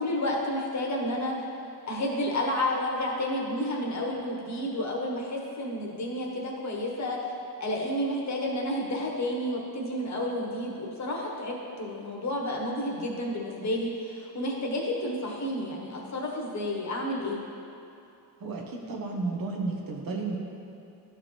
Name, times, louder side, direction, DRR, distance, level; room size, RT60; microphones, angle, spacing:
voice 1, 0.0-1.3 1.8-7.2 7.6-17.4, left 1 dB, 45° left, -1 dB, 1.3 m, -31 dB
voice 2, 18.4-20.4, right 3 dB, 65° right, -1 dB, 1.2 m, -32 dB
12.5 x 4.8 x 3.2 m, 2.7 s
cardioid pair, 125°, 38 cm